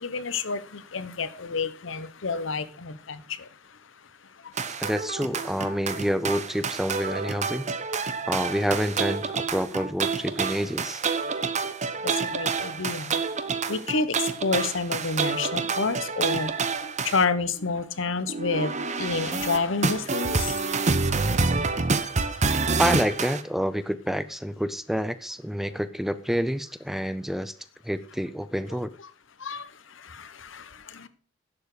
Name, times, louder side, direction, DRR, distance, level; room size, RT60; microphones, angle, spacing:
voice 1, 0.0-3.2 12.2-13.1 13.7-14.1 14.4-16.5 17.1-20.8 29.4-29.6 30.5-30.6, left 4 dB, 70° left, 1.0 m, -28 dB
sound 1, 4.6-17.3 18.3-23.4, right 4 dB, 35° right, 0.8 m, -28 dB
voice 2, 4.8-7.7 8.3-11.0 22.8-27.5 27.8-28.9, equal, ahead, 0.5 m, -28 dB
11.0 x 7.3 x 4.9 m
head